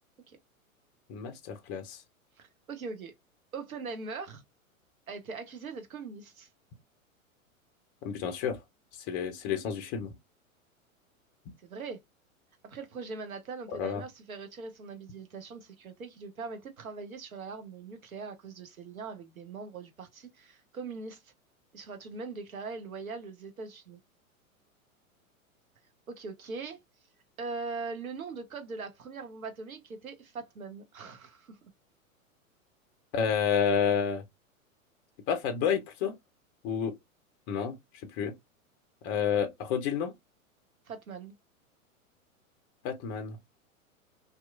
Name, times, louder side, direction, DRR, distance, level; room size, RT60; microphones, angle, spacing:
voice 1, 1.1-2.0 8.0-8.6 9.0-10.1 13.7-14.0 33.1-34.2 35.3-36.1 36.6-36.9 37.5-37.8 38.0-38.4 39.0-40.1 42.8-43.4, left 7 dB, 25° left, 0.4 m, -30 dB
voice 2, 2.4-3.1 3.5-4.4 5.1-6.5 11.6-12.0 12.6-21.3 21.7-24.0 26.1-26.8 27.4-31.7 40.9-41.3, right 4 dB, 75° right, 0.9 m, -41 dB
2.8 x 2.3 x 2.3 m
figure-of-eight pair, 100°, 42 cm